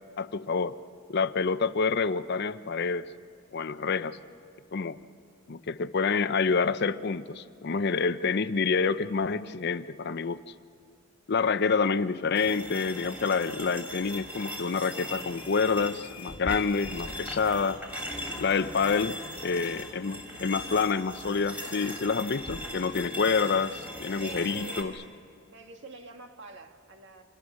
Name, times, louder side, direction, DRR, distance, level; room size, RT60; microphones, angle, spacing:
voice 1, 0.2-0.7 1.1-3.1 3.5-4.2 4.7-5.0 5.5-10.4 11.3-17.8 18.4-19.1 19.4-24.9, left 5 dB, 50° left, 13 dB, 0.6 m, -27 dB
sound 1, 12.3-24.8, left 1 dB, 5° right, 3.2 m, -39 dB
sound 2, 15.2-15.7 16.0-24.5, left 2 dB, 90° left, 1.5 m, -48 dB
voice 2, 24.1-25.0 25.5-27.2, right 4 dB, 55° right, 5 dB, 1.8 m, -46 dB
28.5 x 27.0 x 6.3 m, 2.3 s
head